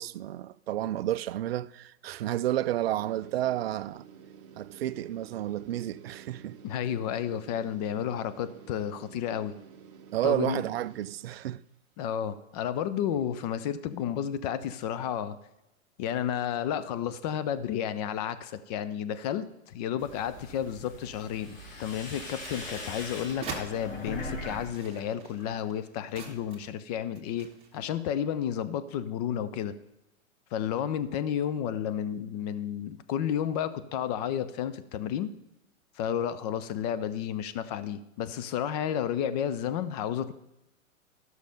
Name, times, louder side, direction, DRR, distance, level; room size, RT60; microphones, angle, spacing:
voice 1, 0.0-4.0 4.6-6.6 10.1-11.6, right 13 dB, 50° right, 0.4 m, -31 dB
sound 1, 2.8-11.6, right 8 dB, 35° right, 1.1 m, -51 dB
voice 2, 6.6-9.5 10.2-10.6 12.0-15.4 16.0-19.5 19.7-29.7 30.5-35.3 36.0-40.3, left 9 dB, 30° left, 0.6 m, -32 dB
sound 2, 20.0-24.7 25.0-25.6, left 1 dB, 70° left, 4.1 m, -41 dB
sound 3, 21.9-23.7 24.5-26.8 27.2-27.8, right 5 dB, 15° right, 1.6 m, -44 dB
13.0 x 6.4 x 5.3 m
hypercardioid pair, 135°, 41 cm